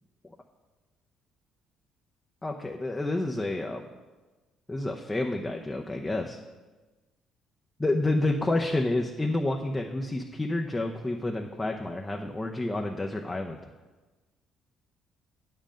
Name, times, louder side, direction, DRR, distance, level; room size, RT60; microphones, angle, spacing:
voice 1, 2.4-3.8 4.7-6.4 7.8-13.6, left 2 dB, 15° left, 2 dB, 0.7 m, -29 dB
8.9 x 7.6 x 5.1 m, 1.2 s
cardioid pair, 85°, 0 cm